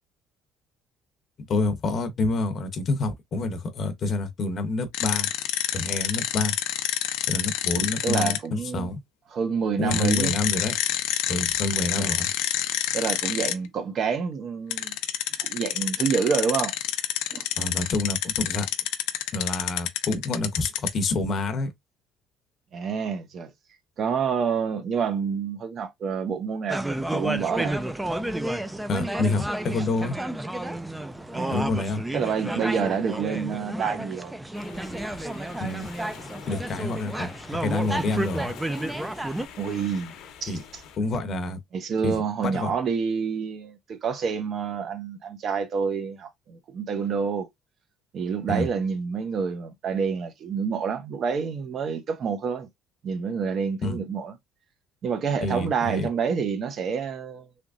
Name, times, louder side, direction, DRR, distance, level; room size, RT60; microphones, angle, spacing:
voice 1, 1.5-5.3 5.7-6.5 7.2-9.0 9.8-10.7 11.3-12.3 17.6-18.7 19.3-21.7 28.9-30.2 31.5-32.0 35.6-35.9 36.5-38.5 40.5-40.6 41.0-41.6 42.0-42.7 48.5-48.7 53.8-54.0 55.4-56.1, left 2 dB, 40° left, 0.8 m, -27 dB
sound 1, 4.9-8.4 9.9-13.5 14.7-21.0, left 13 dB, 90° left, 0.5 m, -27 dB
voice 2, 7.8-8.9 9.3-10.4 12.0-12.1 12.9-15.0 15.4-16.7 17.3-17.5 22.7-23.5 24.0-26.8 27.1-27.8 31.3-31.6 32.1-34.3 39.6-40.1 40.4-40.8 41.7-47.5 48.1-52.7 53.0-54.3 55.0-57.5, right 6 dB, 45° right, 0.8 m, -28 dB
sound 2, 26.7-39.5, right 1 dB, 10° right, 0.4 m, -31 dB
sound 3, 34.5-41.0, left 7 dB, 70° left, 0.9 m, -45 dB
3.5 x 2.9 x 2.5 m
cardioid pair, 125°, 0 cm